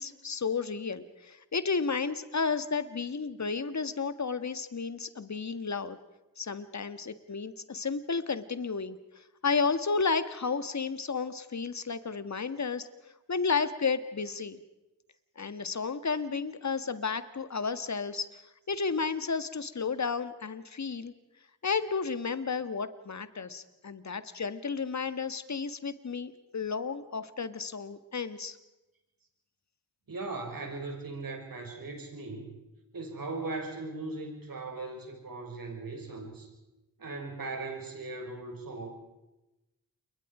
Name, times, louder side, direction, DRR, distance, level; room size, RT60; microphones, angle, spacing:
voice 1, 0.0-6.0 6.4-14.6 15.4-18.4 18.7-21.1 21.6-28.6, left 5 dB, 45° left, 12 dB, 1.8 m, -32 dB
voice 2, 30.1-32.5 32.9-36.5 37.0-38.9, right 3 dB, 55° right, 2 dB, 6.6 m, -38 dB
29.0 x 22.5 x 5.0 m, 0.99 s
cardioid pair, 50°, 40 cm